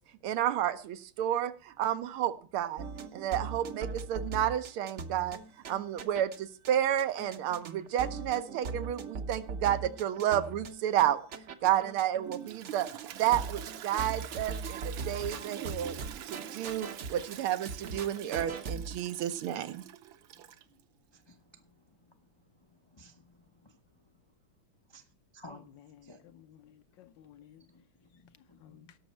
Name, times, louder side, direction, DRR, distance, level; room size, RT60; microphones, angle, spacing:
voice 1, 0.2-2.8 3.1-5.4 5.7-11.2 11.6-12.9 13.1-16.0 16.3-19.8, right 11 dB, 90° right, 11 dB, 1.7 m, -31 dB
sound 1, 2.8-6.4 6.7-6.8 7.0-12.4 12.6-13.0 13.3-17.4 17.7-19.0, right 4 dB, 55° right, 0.8 m, -40 dB
Toilet flush, 12.2-20.8, right 11 dB, 70° right, 1.5 m, -45 dB
voice 2, 21.1-22.1 22.6-23.8 24.9-25.0 25.3-25.6 26.0-26.2 27.6-28.9, left 1 dB, 40° left, 4 dB, 0.3 m, -55 dB
voice 3, 25.5-27.6 28.6-29.0, left 11 dB, 70° left, 11 dB, 1.2 m, -56 dB
17.5 x 6.3 x 4.3 m, 0.42 s
omnidirectional pair, 2.3 m